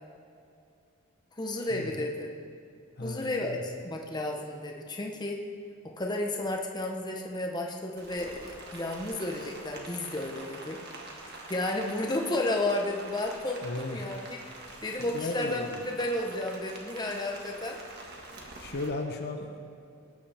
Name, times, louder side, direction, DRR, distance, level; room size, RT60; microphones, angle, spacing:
voice 1, 1.4-2.3 3.0-5.4 5.8-10.8 11.5-14.4 14.8-17.8, left 1 dB, 20° left, 1 dB, 1.0 m, -32 dB
voice 2, 3.0-3.6 13.6-14.0 15.0-15.8 18.6-19.6, left 2 dB, 50° left, 4 dB, 0.9 m, -36 dB
Rain, 8.0-18.9, right 2 dB, 50° right, 1.7 m, -46 dB
19.0 x 9.5 x 3.5 m, 2.5 s
head